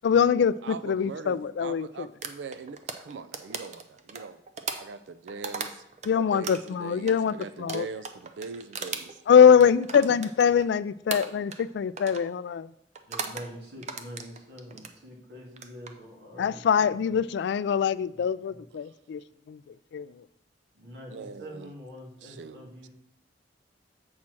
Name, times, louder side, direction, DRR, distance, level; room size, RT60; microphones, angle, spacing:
voice 1, 0.0-2.1 6.1-7.9 9.3-12.7 16.4-19.2 19.5-19.6 19.9-20.1, left 7 dB, 70° left, 17 dB, 0.3 m, -23 dB
voice 2, 0.6-4.4 4.7-5.8 6.2-9.2 18.8-18.9 21.1-21.7 22.2-22.9, right 4 dB, 85° right, 13 dB, 0.4 m, -41 dB
sound 1, 2.2-6.1 6.4-10.7 11.1-11.7 12.0-12.3 12.9-13.5 13.8-14.9 15.5-15.9, right 5 dB, 40° right, 0.6 m, -37 dB
voice 3, 13.0-17.2 18.1-18.6 20.7-22.9, equal, 65° right, -1 dB, 2.1 m, -45 dB
7.3 x 4.3 x 6.1 m, 0.79 s
head